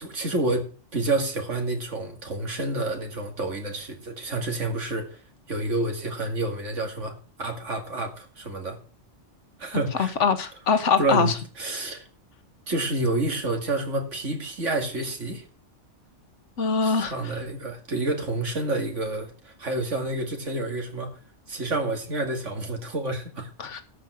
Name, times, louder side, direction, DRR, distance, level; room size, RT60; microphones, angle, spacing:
voice 1, 0.0-5.2 5.5-8.8 9.6-10.1 11.0-12.1 12.7-15.4 16.8-21.2 21.5-23.5, right 2 dB, 85° right, 2.6 m, -29 dB
voice 2, 10.0-11.3 16.6-17.1 23.6-23.8, left 5 dB, 75° left, 1.6 m, -23 dB
13.0 x 5.4 x 7.6 m
omnidirectional pair, 1.2 m